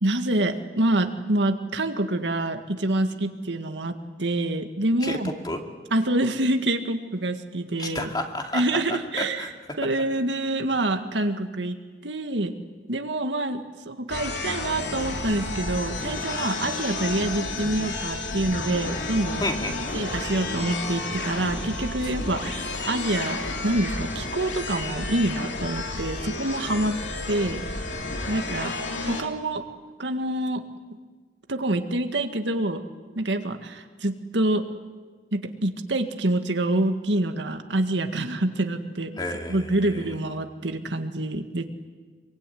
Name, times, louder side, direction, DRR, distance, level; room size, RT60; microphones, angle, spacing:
voice 1, 0.0-5.3 5.9-8.1 8.5-9.5 9.8-11.8 12.0-12.5 12.9-19.4 19.9-27.0 27.3-27.6 28.3-28.7 29.0-29.7 30.0-30.6 31.5-32.8 33.2-34.6 35.3-39.2 39.5-41.6, right 1 dB, 90° right, 6 dB, 2.0 m, -26 dB
voice 2, 5.0-5.6 7.8-8.6 8.9-9.5 19.4-19.8 22.0-22.1 39.2-40.1, left 1 dB, 25° left, 3 dB, 2.5 m, -31 dB
sound 1, 14.1-29.2, left 3 dB, 85° left, 3.0 m, -31 dB
25.0 x 23.5 x 9.4 m, 1.4 s
head